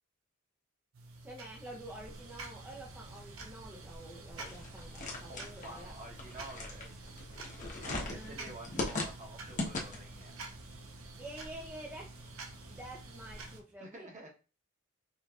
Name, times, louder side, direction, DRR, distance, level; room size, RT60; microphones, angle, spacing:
sound 1, 0.9-13.6, right 2 dB, 80° right, 0.9 m, -48 dB
voice 1, 1.2-5.9 7.9-8.5 11.2-12.1 12.7-14.1, right 1 dB, 10° right, -3 dB, 0.5 m, -48 dB
Tattoo Case, 4.4-10.2, left 2 dB, 35° left, 1.0 m, -39 dB
voice 2, 5.3-7.0 7.6-10.3 13.8-14.3, right 1 dB, 35° right, 1 dB, 1.0 m, -49 dB
5.2 x 3.0 x 2.4 m, 0.34 s
head